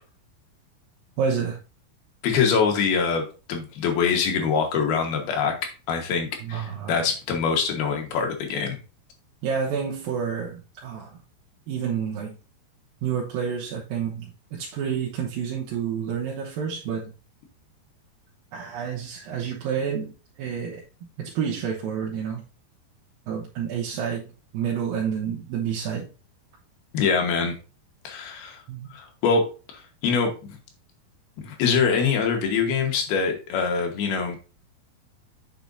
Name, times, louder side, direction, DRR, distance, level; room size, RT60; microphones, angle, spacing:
voice 1, 1.2-1.6 6.4-7.0 9.4-11.2 11.7-12.3 13.0-17.1 18.5-20.8 21.2-22.4 23.3-26.1 28.7-28.9, right 7 dB, 70° right, 2.5 m, -29 dB
voice 2, 2.2-5.5 5.9-8.8 26.9-27.5 28.0-28.6 28.9-29.4 29.7-30.6 31.4-34.4, left 5 dB, 75° left, 3.2 m, -24 dB
8.7 x 6.1 x 2.7 m
omnidirectional pair, 4.6 m